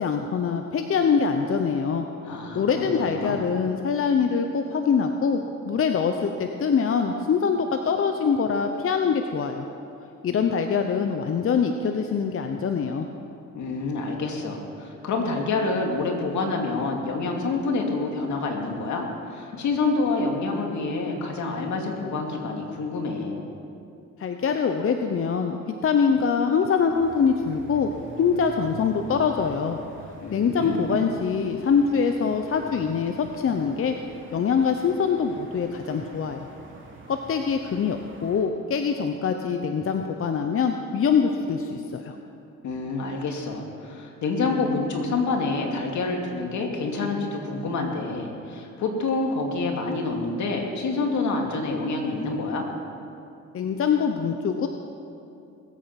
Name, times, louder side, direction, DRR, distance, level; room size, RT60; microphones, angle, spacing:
voice 1, 0.0-2.1 2.5-9.6 10.2-13.1 24.2-25.6 25.8-27.9 28.2-29.8 30.3-33.9 34.3-36.5 37.1-42.1 53.5-54.7, left 6 dB, 45° left, 5 dB, 0.9 m, -24 dB
voice 2, 2.2-3.5 13.5-23.5 30.2-31.0 42.6-52.7, left 3 dB, 70° left, 2 dB, 2.4 m, -27 dB
sound 1, 26.9-38.4, right 3 dB, 40° right, 3.1 m, -46 dB
20.5 x 8.8 x 5.9 m, 2.6 s
cardioid pair, 90°, 30 cm